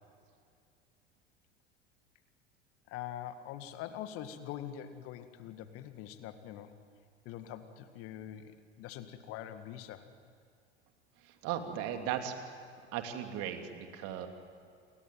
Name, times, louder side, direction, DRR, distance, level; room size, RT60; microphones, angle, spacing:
voice 1, 2.9-6.8 7.3-10.1 11.9-12.1, left 11 dB, 45° left, 10 dB, 1.9 m, -44 dB
voice 2, 11.2-12.4 12.9-14.3, right 10 dB, 45° right, 6 dB, 2.8 m, -37 dB
29.5 x 21.5 x 9.2 m, 2.3 s
figure-of-eight pair, 75°, 33 cm